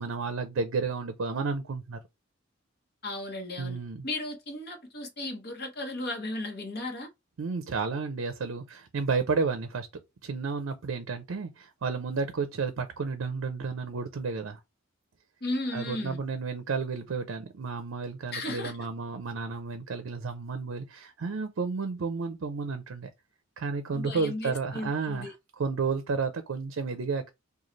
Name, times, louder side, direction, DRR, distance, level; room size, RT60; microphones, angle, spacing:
voice 1, 0.0-2.0 3.6-4.1 7.4-9.9 10.2-14.6 15.7-23.1 23.6-27.3, right 4 dB, 75° right, 0.5 m, -32 dB
voice 2, 3.0-3.8 4.0-7.1 15.4-16.2 18.3-18.7 23.9-25.3, left 2 dB, 50° left, 1.0 m, -35 dB
3.1 x 2.3 x 3.8 m
head